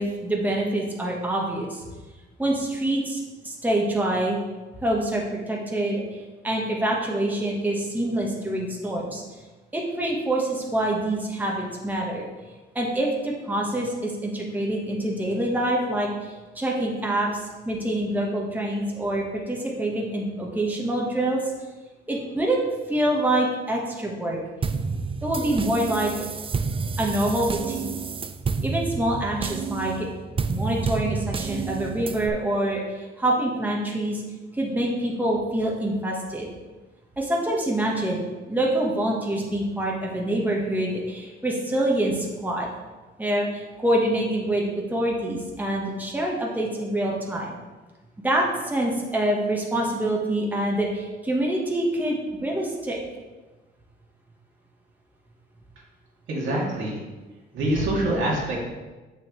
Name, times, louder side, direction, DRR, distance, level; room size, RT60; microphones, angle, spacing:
voice 1, 0.0-1.8 2.4-4.4 4.8-6.2 6.4-9.2 9.7-12.3 12.7-21.4 22.1-22.6 22.9-24.4 25.2-26.1 27.0-28.0 28.6-30.1 30.5-34.2 34.5-36.5 37.2-38.2 38.5-42.7 43.2-47.6 48.2-53.0, right 1 dB, 10° right, -2 dB, 1.3 m, -26 dB
sound 1, 24.6-32.3, right 5 dB, 25° right, 0.4 m, -29 dB
voice 2, 56.3-57.0 57.5-58.6, right 1 dB, 75° right, -4 dB, 2.3 m, -25 dB
6.9 x 6.4 x 3.1 m, 1.2 s
cardioid pair, 90°, 20 cm